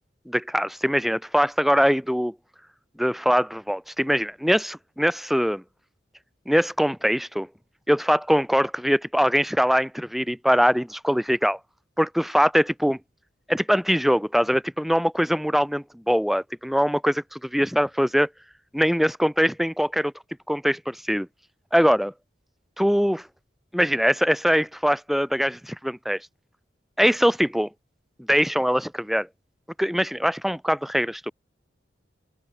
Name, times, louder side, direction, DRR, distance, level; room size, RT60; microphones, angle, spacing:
voice 1, 0.3-2.3 3.0-5.6 6.5-7.5 7.9-11.6 12.0-13.0 13.5-18.3 18.7-20.1 20.5-21.3 21.7-22.1 22.8-23.3 23.7-26.2 27.0-27.7 28.3-29.3 29.8-31.3, equal, ahead, 3.1 m, -22 dB
open air
head